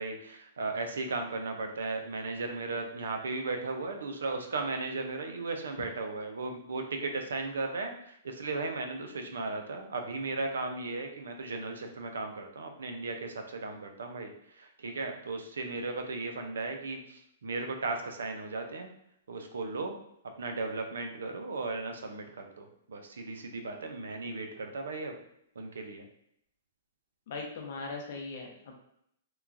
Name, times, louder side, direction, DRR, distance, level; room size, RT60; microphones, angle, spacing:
voice 1, 0.0-14.3 14.6-18.9 19.3-20.0 20.4-25.1 25.6-26.1, right 3 dB, 90° right, 5 dB, 0.5 m, -36 dB
voice 2, 27.3-28.7, left 3 dB, 60° left, 1 dB, 0.7 m, -39 dB
2.9 x 2.3 x 2.5 m, 0.72 s
hypercardioid pair, 140°, 0 cm